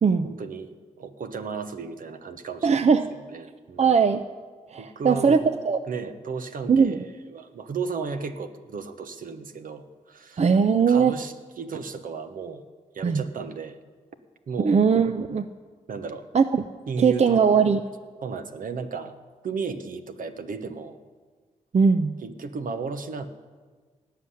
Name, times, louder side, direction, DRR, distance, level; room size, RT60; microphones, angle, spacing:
voice 1, 0.2-2.9 3.3-3.9 4.8-5.5 5.9-10.5 10.8-12.6 12.9-13.8 14.5-14.8 15.9-16.3 16.9-17.5 18.2-19.1 19.4-21.0 22.2-23.3, right 5 dB, 70° right, 8 dB, 1.1 m, -34 dB
voice 2, 2.6-3.1 3.8-4.2 4.7-5.8 6.7-7.0 10.4-11.2 13.0-13.2 14.6-15.5 16.3-16.6 17.0-17.8 21.7-22.1, right 6 dB, 50° right, 10 dB, 0.7 m, -20 dB
17.0 x 5.9 x 9.9 m, 1.5 s
supercardioid pair, 45°, 15 cm